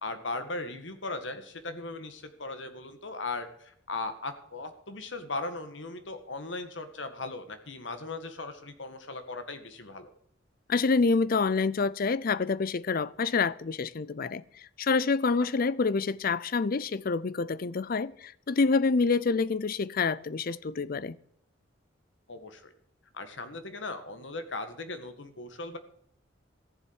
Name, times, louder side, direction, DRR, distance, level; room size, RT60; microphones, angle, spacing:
voice 1, 0.0-10.1 22.3-22.7 23.1-25.8, left 3 dB, 70° left, 1.8 m, -38 dB
voice 2, 10.7-21.2, left 4 dB, 50° left, 0.5 m, -27 dB
14.5 x 7.4 x 8.0 m
head